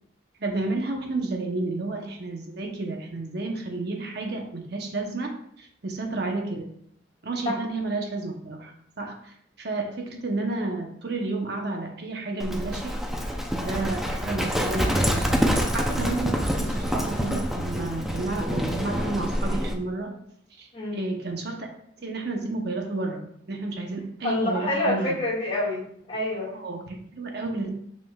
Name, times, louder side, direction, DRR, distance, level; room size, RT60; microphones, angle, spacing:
voice 1, 0.4-6.7 7.2-12.9 13.6-20.1 20.6-21.7 22.0-25.2 26.5-27.7, right 2 dB, 55° right, 2 dB, 0.9 m, -31 dB
Livestock farm animals working animals, 12.4-19.8, equal, ahead, 0.5 m, -26 dB
voice 2, 20.7-21.0 24.2-26.6, left 1 dB, 30° left, -6 dB, 2.4 m, -27 dB
6.7 x 6.1 x 2.4 m, 0.69 s
head